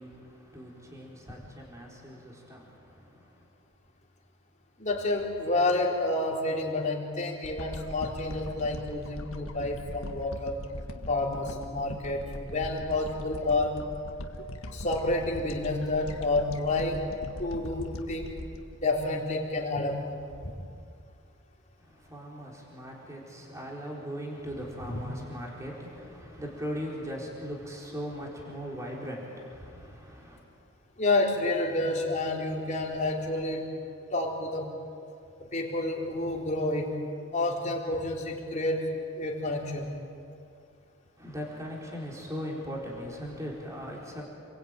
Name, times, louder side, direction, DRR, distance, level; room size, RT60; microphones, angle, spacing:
voice 1, 0.0-3.5 21.8-30.4 41.2-44.2, equal, 15° right, -2 dB, 4.4 m, -39 dB
voice 2, 4.8-10.6 11.1-13.8 14.7-17.1 17.4-18.3 18.8-20.0 20.4-20.5 24.9-25.0 31.0-33.8 34.1-34.8 35.4-37.0 37.3-39.9, left 2 dB, 35° left, -1 dB, 4.1 m, -29 dB
sound 1, 7.4-19.8 20.2-20.3, left 1 dB, 80° left, 1.7 m, -41 dB
29.5 x 22.0 x 9.2 m, 2.4 s
head